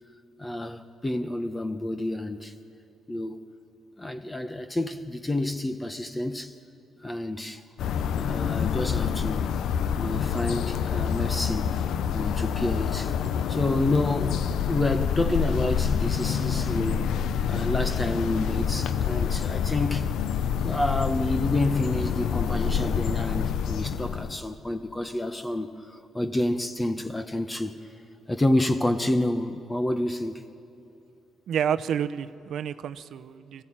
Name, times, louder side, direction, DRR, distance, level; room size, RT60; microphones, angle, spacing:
voice 1, 0.4-2.5 3.1-3.4 4.0-6.5 7.0-7.6 8.1-9.5 10.0-11.8 12.1-13.1 13.5-17.1 17.5-20.1 20.6-27.7 28.3-30.4, left 1 dB, 15° left, 1.1 m, -29 dB
sound 1, 7.8-24.4, left 8 dB, 80° left, 0.7 m, -27 dB
voice 2, 31.5-33.6, right 8 dB, 70° right, 0.8 m, -29 dB
25.5 x 15.0 x 8.9 m
cardioid pair, 90°, 0 cm